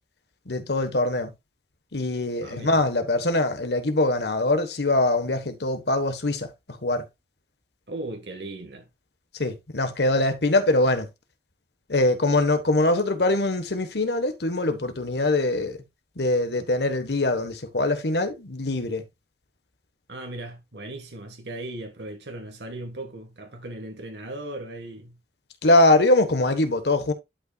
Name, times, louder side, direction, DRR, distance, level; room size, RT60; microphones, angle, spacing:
voice 1, 0.5-1.3 1.9-7.0 9.3-11.1 11.9-15.8 16.2-19.0 25.6-27.1, left 2 dB, 70° left, 1.3 m, -23 dB
voice 2, 2.4-2.8 7.9-8.9 20.1-25.2, right 2 dB, 80° right, 1.6 m, -37 dB
11.5 x 5.5 x 2.4 m
head